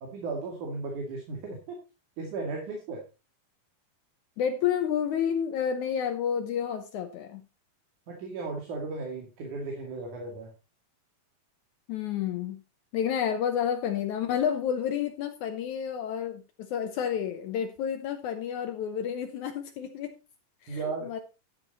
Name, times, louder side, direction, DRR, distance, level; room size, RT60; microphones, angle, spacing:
voice 1, 0.0-1.8 2.2-3.0 8.1-10.5 20.7-21.1, right 3 dB, 70° right, 3.7 m, -35 dB
voice 2, 4.4-7.4 11.9-12.6 12.9-20.2 20.6-21.2, left 8 dB, 70° left, 2.1 m, -30 dB
12.5 x 7.4 x 4.2 m
omnidirectional pair, 3.7 m